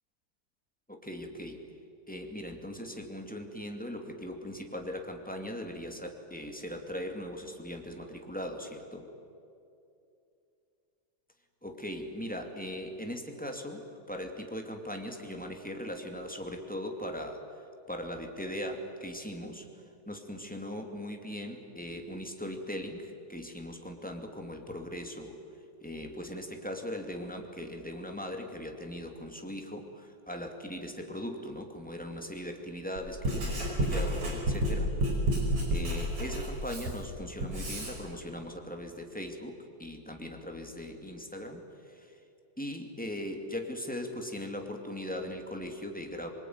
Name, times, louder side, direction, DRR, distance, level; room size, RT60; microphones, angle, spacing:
voice 1, 0.9-1.6 2.1-9.1 11.6-17.4 17.9-19.7 20.1-25.4 25.8-34.9 35.7-42.2 42.6-46.3, equal, 5° left, 3 dB, 1.9 m, -39 dB
Writing, 33.0-37.9, right 1 dB, 65° right, 7.0 m, -30 dB
25.5 x 22.5 x 9.5 m, 2.6 s
omnidirectional pair, 3.4 m